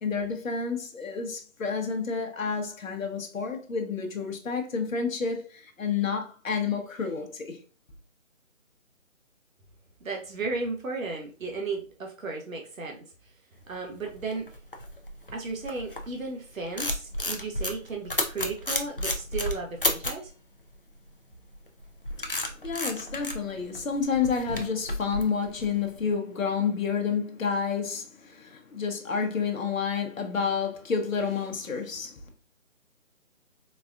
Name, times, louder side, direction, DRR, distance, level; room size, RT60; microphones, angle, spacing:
voice 1, 0.0-7.6 22.2-32.2, left 5 dB, 75° left, 0.9 m, -30 dB
voice 2, 10.0-13.3 13.7-14.5 15.3-20.3, right 3 dB, 80° right, 0.8 m, -35 dB
sound 1, 13.8-16.2 16.5-20.3 21.5-26.0, left 1 dB, 45° left, 0.4 m, -32 dB
4.0 x 2.4 x 2.4 m
figure-of-eight pair, 170°, 40 cm